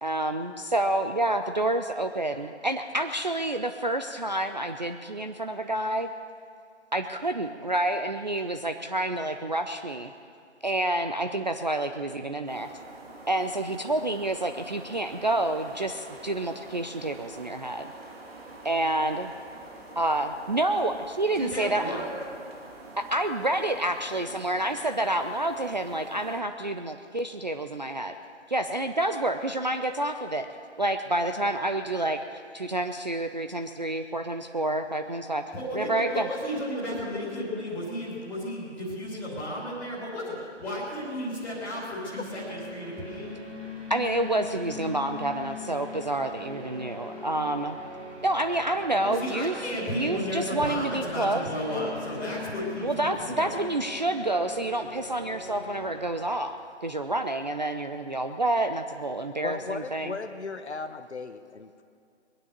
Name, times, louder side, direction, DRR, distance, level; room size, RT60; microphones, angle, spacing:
voice 1, 0.0-6.1 6.9-10.1 10.6-12.7 13.3-17.9 18.6-19.3 20.0-22.0 23.1-28.1 28.5-30.5 30.8-35.4 35.7-36.3 43.9-47.8 48.2-51.4 52.8-60.1, right 1 dB, 40° right, 6 dB, 0.5 m, -28 dB
sound 1, 12.5-26.4, right 2 dB, 55° right, 2.5 m, -46 dB
voice 2, 21.3-22.1 35.5-43.3 49.0-53.6, equal, 5° left, -8 dB, 3.0 m, -33 dB
sound 2, 42.0-56.1, left 2 dB, 85° right, 5.5 m, -42 dB
voice 3, 59.4-61.8, left 4 dB, 65° left, 8 dB, 1.0 m, -36 dB
21.5 x 10.0 x 6.7 m, 2.4 s
figure-of-eight pair, 160°, 37 cm